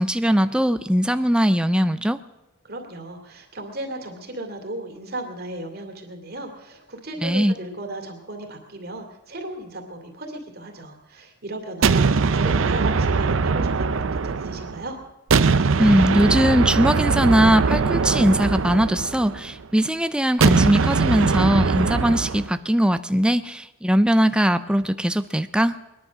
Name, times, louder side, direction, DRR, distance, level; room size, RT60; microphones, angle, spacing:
voice 1, 0.0-2.2 7.2-7.5 15.8-25.8, equal, 5° right, 11 dB, 0.5 m, -20 dB
voice 2, 2.6-15.0, right 1 dB, 45° right, 3 dB, 2.5 m, -35 dB
sound 1, 11.8-14.8 15.3-19.6 20.4-22.5, right 4 dB, 65° right, 0.6 m, -21 dB
21.5 x 11.0 x 6.3 m, 1.0 s
head